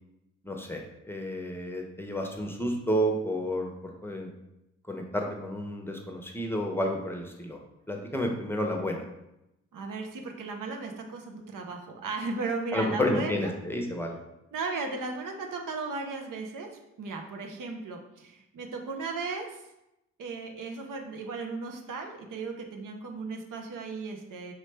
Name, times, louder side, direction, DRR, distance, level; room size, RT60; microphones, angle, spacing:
voice 1, 0.4-4.3 4.9-7.6 7.9-9.1 12.7-14.2, equal, 5° left, 2 dB, 0.9 m, -31 dB
voice 2, 9.7-13.5 14.5-19.6 20.2-24.5, right 3 dB, 55° right, 3 dB, 0.9 m, -36 dB
5.0 x 3.1 x 3.2 m, 0.89 s
hypercardioid pair, 40°, 37 cm